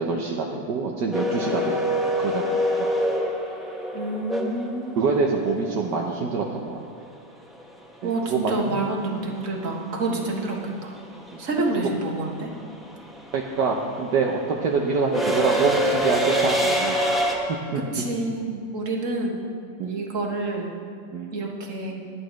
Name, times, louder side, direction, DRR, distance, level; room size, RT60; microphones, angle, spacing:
voice 1, 0.0-2.5 2.8-2.9 5.0-6.8 8.0-8.9 10.1-10.2 11.3-11.4 13.3-16.9 17.5-17.8 19.8-20.1 21.1-21.3, right 4 dB, 70° right, -1 dB, 1.5 m, -26 dB
sound 1, 1.1-5.2 7.6-7.7 9.0-9.3 9.6-17.3, equal, ahead, 1.4 m, -25 dB
voice 2, 3.9-5.1 8.0-11.0 11.4-12.5 17.7-19.5 19.8-20.7 21.3-22.0, right 2 dB, 45° right, -1 dB, 1.9 m, -28 dB
22.0 x 11.0 x 3.2 m, 2.3 s
omnidirectional pair, 2.0 m